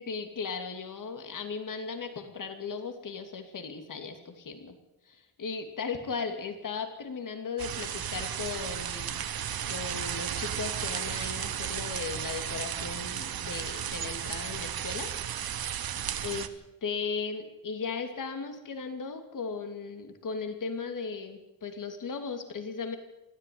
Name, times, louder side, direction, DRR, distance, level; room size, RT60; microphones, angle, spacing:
voice 1, 0.0-4.8 5.1-9.3 9.7-15.1 16.2-23.0, left 5 dB, 55° left, 7 dB, 2.6 m, -37 dB
sound 1, 7.6-16.5, right 9 dB, 70° right, 1.2 m, -34 dB
19.5 x 14.0 x 9.4 m, 0.97 s
wide cardioid pair, 130°, 38 cm